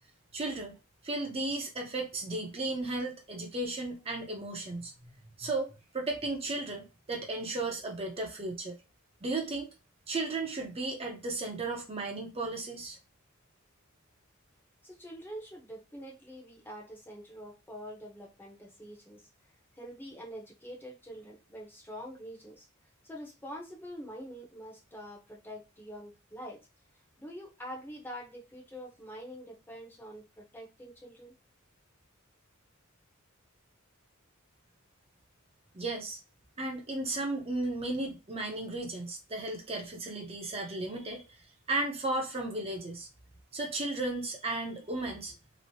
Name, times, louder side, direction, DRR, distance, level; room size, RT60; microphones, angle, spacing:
voice 1, 0.3-0.8 1.0-4.9 5.4-8.8 9.2-9.7 10.1-13.0 35.7-36.2 36.6-41.2 41.7-43.1 43.5-45.3, right 2 dB, 30° right, 0.6 m, -34 dB
voice 2, 14.8-19.3 19.7-22.7 23.0-26.6 27.2-31.3, equal, 10° left, 0.7 m, -45 dB
3.0 x 2.0 x 2.7 m
head